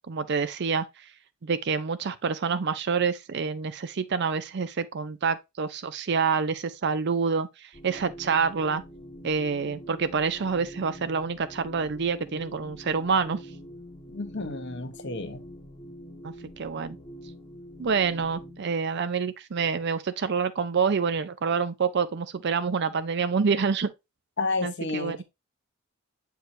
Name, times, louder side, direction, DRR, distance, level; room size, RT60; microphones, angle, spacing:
voice 1, 0.1-0.9 1.4-8.8 9.2-13.4 16.2-17.0 17.8-23.9 24.6-25.2, right 5 dB, 55° right, 0.5 m, -27 dB
sound 1, 7.7-18.6, equal, 30° left, 1.2 m, -45 dB
voice 2, 14.1-15.4 24.4-25.2, left 3 dB, 55° left, 1.0 m, -31 dB
7.8 x 4.6 x 2.7 m
head